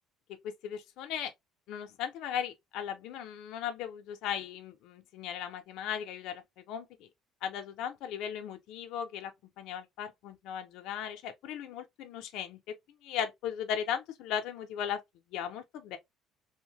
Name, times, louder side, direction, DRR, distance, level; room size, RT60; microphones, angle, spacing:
voice 1, 0.4-1.3 1.7-6.4 6.7-7.1 7.4-9.3 9.6-12.6 13.0-15.0 15.3-16.0, left 9 dB, 65° left, 0.5 m, -37 dB
2.7 x 2.0 x 2.9 m
cardioid pair, 175°, 0 cm